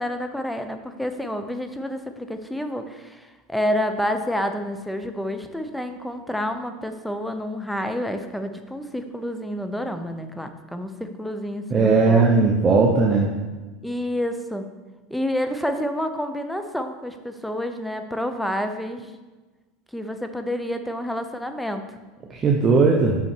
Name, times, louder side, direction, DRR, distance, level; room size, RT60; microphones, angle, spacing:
voice 1, 0.0-12.3 13.8-14.7 15.1-19.1 19.9-21.8, equal, ahead, 7 dB, 0.6 m, -29 dB
voice 2, 11.7-13.3 22.3-23.2, right 4 dB, 25° right, -1 dB, 0.9 m, -18 dB
6.1 x 5.9 x 4.5 m, 1.2 s
supercardioid pair, 125°, 0 cm